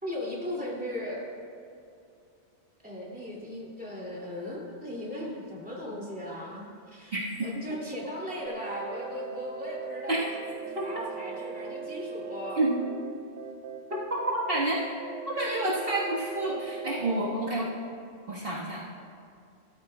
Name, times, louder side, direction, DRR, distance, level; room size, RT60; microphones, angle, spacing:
voice 1, 0.0-1.2 2.8-7.2 7.4-12.6, left 1 dB, 5° right, -5 dB, 2.5 m, -37 dB
sound 1, 8.5-17.2, right 5 dB, 80° right, 0.9 m, -40 dB
voice 2, 13.9-14.8 15.3-17.7 18.3-19.0, right 1 dB, 55° right, -6 dB, 1.7 m, -29 dB
15.5 x 13.5 x 2.2 m, 2.4 s
omnidirectional pair, 1.2 m